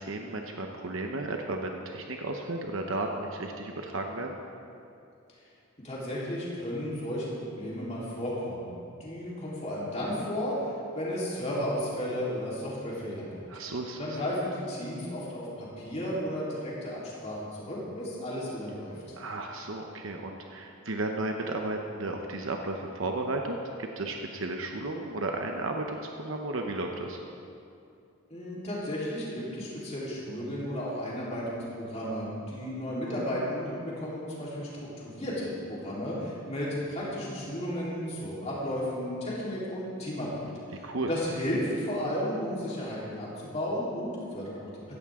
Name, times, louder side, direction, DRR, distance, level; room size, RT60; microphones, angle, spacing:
voice 1, 0.0-4.4 13.5-14.2 19.2-27.2 40.8-41.1, right 2 dB, 65° right, 2 dB, 0.9 m, -34 dB
voice 2, 5.8-10.5 11.0-13.4 13.9-18.9 28.3-40.5 41.0-43.3 43.5-44.7, equal, 30° left, -7 dB, 3.7 m, -33 dB
16.5 x 14.5 x 3.7 m, 2.6 s
head